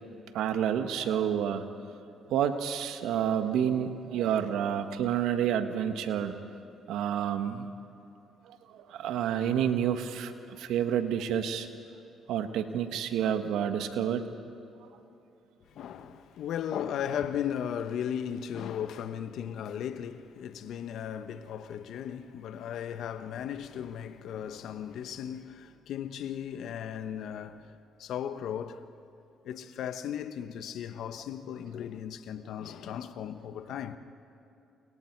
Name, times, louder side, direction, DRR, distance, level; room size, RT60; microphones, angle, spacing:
voice 1, 0.3-1.6 2.3-6.4 6.9-7.7 8.5-11.7 12.3-14.3, right 9 dB, 75° right, 1.5 m, -29 dB
voice 2, 15.7-28.9 29.4-34.0, left 9 dB, 70° left, 1.1 m, -36 dB
30.0 x 29.0 x 4.7 m
supercardioid pair, 60°, 0 cm